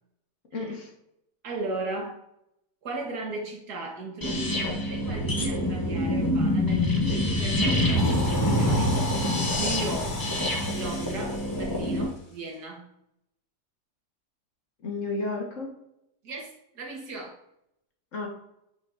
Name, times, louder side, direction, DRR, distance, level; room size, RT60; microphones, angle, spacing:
voice 1, 0.5-0.9 9.7-9.9 14.8-15.7 18.1-18.3, left 3 dB, 50° left, 0 dB, 1.6 m, -32 dB
voice 2, 1.4-2.2 2.8-9.0 9.6-10.2 10.7-12.9 16.2-17.4, right 2 dB, 75° right, 0 dB, 1.9 m, -36 dB
sound 1, 4.2-12.1, left 1 dB, 20° left, 0.6 m, -25 dB
Rattle (instrument), 7.8-12.5, left 3 dB, 85° left, 2.1 m, -41 dB
8.4 x 5.2 x 2.6 m, 0.81 s
omnidirectional pair, 1.7 m